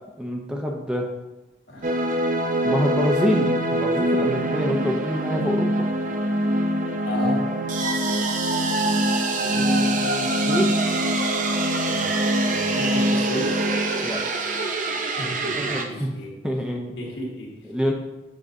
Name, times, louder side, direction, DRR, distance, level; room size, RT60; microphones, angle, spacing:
voice 1, 0.2-1.1 2.6-5.9 9.4-10.7 14.0-14.2 15.2-16.2 16.4-17.0 17.6-17.9, equal, 5° right, 0 dB, 0.6 m, -27 dB
sound 1, 1.8-15.8, right 1 dB, 45° right, 0.6 m, -23 dB
voice 2, 7.0-7.5 11.9-12.1 12.5-13.7 15.2-16.3 17.0-17.5, left 1 dB, 75° left, -2 dB, 1.8 m, -33 dB
7.5 x 6.2 x 2.7 m, 1.0 s
head